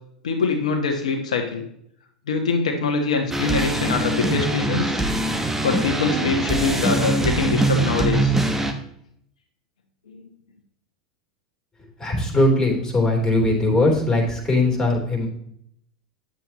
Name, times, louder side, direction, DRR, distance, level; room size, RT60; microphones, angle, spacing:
voice 1, 0.2-1.6 2.3-5.0 5.6-8.4 10.1-10.2, left 4 dB, 80° left, 3 dB, 1.2 m, -24 dB
sound 1, 3.3-8.7, right 2 dB, 10° right, 1.1 m, -22 dB
voice 2, 12.0-15.3, left 2 dB, 15° left, 1 dB, 3.4 m, -20 dB
9.8 x 7.5 x 3.0 m, 0.71 s
hypercardioid pair, 95°, 4 cm